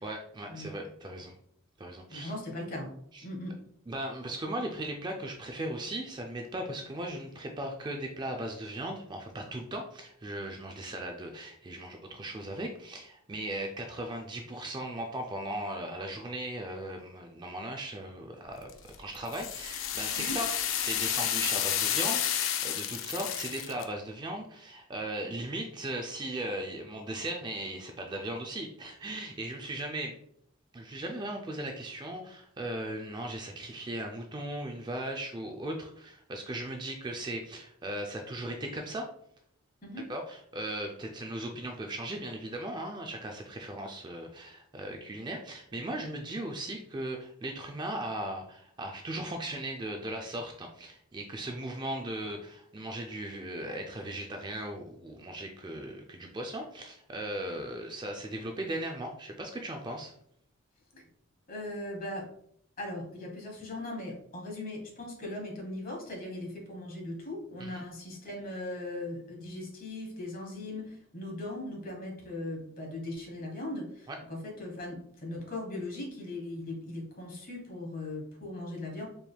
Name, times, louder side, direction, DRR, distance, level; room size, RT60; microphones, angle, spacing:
voice 1, 0.0-1.3 1.8-2.3 3.1-3.2 3.9-18.7 19.0-30.1 30.7-39.1 40.1-60.1 67.6-67.8 74.1-74.2, right 1 dB, 20° right, 2 dB, 0.3 m, -38 dB
voice 2, 2.1-2.9 3.2-3.5 20.2-20.4 39.8-40.1 60.9-61.0 61.5-62.2 62.8-79.0, left 1 dB, 40° left, 0 dB, 1.2 m, -39 dB
sound 1, 18.7-23.8, left 10 dB, 65° left, 0.4 m, -31 dB
4.5 x 3.5 x 2.2 m, 0.67 s
head